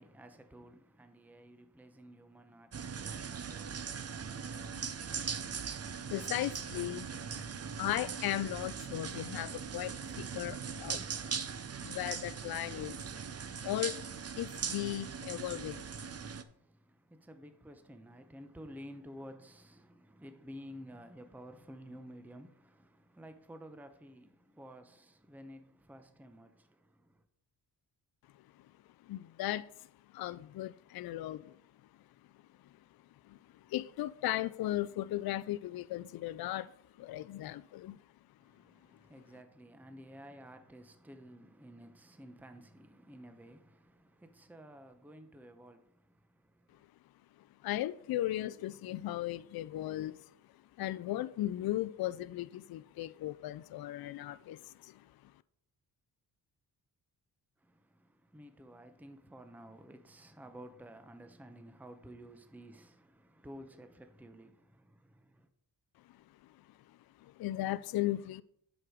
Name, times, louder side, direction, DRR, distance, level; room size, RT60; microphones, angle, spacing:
voice 1, 0.0-4.1 16.3-27.2 38.4-46.8 57.6-65.5, equal, 5° right, 0.8 m, -53 dB
sound 1, 2.7-16.4, right 6 dB, 35° right, 0.7 m, -40 dB
voice 2, 6.0-7.4 7.8-11.0 11.8-13.1 13.6-14.1 14.3-15.9 29.0-29.9 30.1-31.6 33.2-33.4 33.7-36.7 37.0-38.0 47.6-50.2 50.8-55.1 66.9-68.4, left 14 dB, 60° left, 0.5 m, -37 dB
7.5 x 6.3 x 5.1 m
cardioid pair, 80°, 42 cm